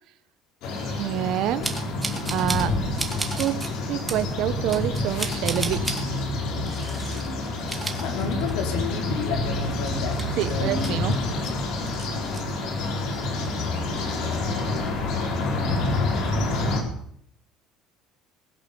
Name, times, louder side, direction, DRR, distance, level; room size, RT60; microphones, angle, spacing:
sound 1, 0.6-16.8, left 2 dB, 60° left, 4.4 m, -28 dB
voice 1, 0.8-1.7 2.3-2.8 3.4-6.3 10.3-11.2, right 12 dB, 55° right, 0.8 m, -27 dB
sound 2, 1.6-2.7 3.0-3.7 4.1-4.2 4.7-6.0 6.7-7.3 7.6-8.8 9.1-9.2 9.6-11.5 11.9-12.4, right 3 dB, 10° right, 2.1 m, -34 dB
voice 2, 7.1-7.5 8.0-11.0 12.1-12.3 12.7-13.2, left 6 dB, 80° left, 4.0 m, -32 dB
20.0 x 10.5 x 6.9 m
cardioid pair, 160°, 0 cm